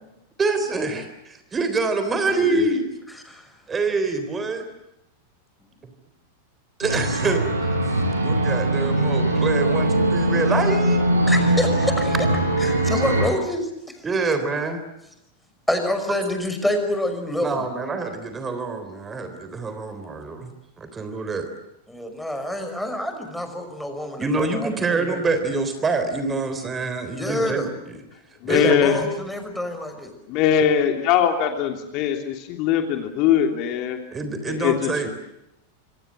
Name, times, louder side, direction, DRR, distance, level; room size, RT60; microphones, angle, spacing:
voice 1, 0.4-2.8 3.7-4.7 6.8-7.4 8.2-11.0 12.9-13.0 14.0-14.8 17.4-20.5 20.8-21.5 24.2-28.0 28.5-29.1 34.1-35.1, right 3 dB, 20° right, 8 dB, 3.8 m, -26 dB
sound 1, 6.8-13.3, right 1 dB, 80° right, 6.1 m, -21 dB
voice 2, 11.3-12.2 12.6-14.0 15.7-17.7 21.9-25.2 27.1-27.7 28.4-30.1, left 1 dB, 5° left, 6 dB, 5.8 m, -27 dB
voice 3, 28.4-29.0 30.3-34.0 34.5-35.1, left 9 dB, 40° left, 5 dB, 3.1 m, -21 dB
26.5 x 26.0 x 7.7 m, 0.87 s
figure-of-eight pair, 90°, 0 cm